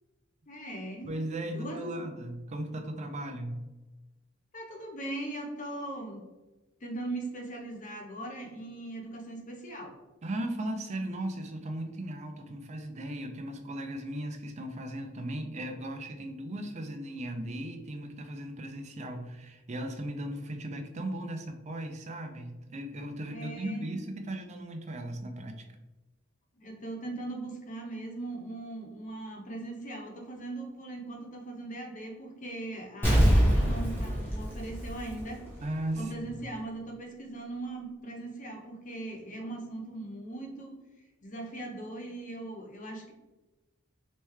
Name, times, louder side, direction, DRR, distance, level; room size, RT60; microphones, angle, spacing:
voice 1, 0.5-1.1 1.4-2.2 4.5-6.2 6.8-9.9 23.3-23.9 26.5-35.4 35.9-40.8 41.2-43.1, right 2 dB, 40° left, 1 dB, 0.7 m, -39 dB
voice 2, 1.0-3.6 10.2-25.6 35.6-36.4, right 1 dB, 35° right, 5 dB, 0.4 m, -37 dB
Explosion, 33.0-35.6 36.0-36.1, equal, 10° left, 0.9 m, -24 dB
3.3 x 3.1 x 3.2 m, 1.1 s
head